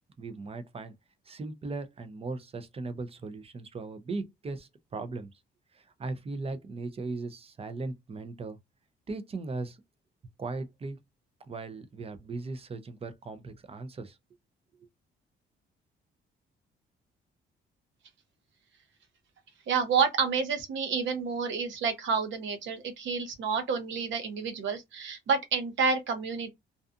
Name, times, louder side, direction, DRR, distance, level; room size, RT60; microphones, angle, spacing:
voice 1, 0.2-0.9 1.3-5.3 5.7-8.6 9.1-9.8 10.4-11.0 11.5-14.2 14.8-14.9, right 3 dB, 30° right, 0.6 m, -38 dB
voice 2, 19.7-26.5, right 5 dB, 70° right, 0.8 m, -29 dB
2.6 x 2.3 x 2.4 m
cardioid pair, 90°, 20 cm